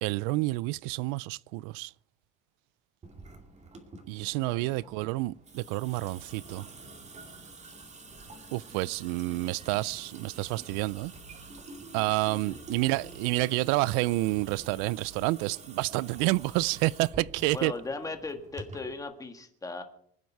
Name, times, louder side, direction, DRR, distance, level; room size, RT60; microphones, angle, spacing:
voice 1, 0.0-1.9 4.1-6.7 8.5-11.1 11.9-17.7, right 21 dB, 80° right, 0.5 m, -29 dB
Water tap faucet / Sink (filling or washing) / Drip, 3.0-19.0, right 2 dB, 20° right, 2.4 m, -48 dB
voice 2, 4.4-4.8 12.5-12.6 17.5-19.8, left 3 dB, 10° left, 1.6 m, -38 dB
sound 1, 10.7-17.8, right 5 dB, 50° right, 3.1 m, -54 dB
25.5 x 9.6 x 4.6 m
cardioid pair, 165°, 33 cm